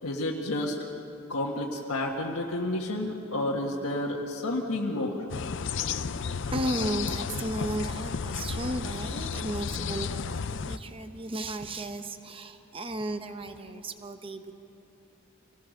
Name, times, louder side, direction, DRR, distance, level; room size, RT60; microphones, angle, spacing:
voice 1, 0.0-0.7 1.3-5.2, left 1 dB, 80° left, -2 dB, 1.5 m, -30 dB
sound 1, 5.3-10.8, left 6 dB, 55° left, 0.5 m, -33 dB
voice 2, 6.5-14.5, right 1 dB, 25° right, 8 dB, 0.9 m, -34 dB
25.5 x 18.5 x 6.5 m, 3.0 s
head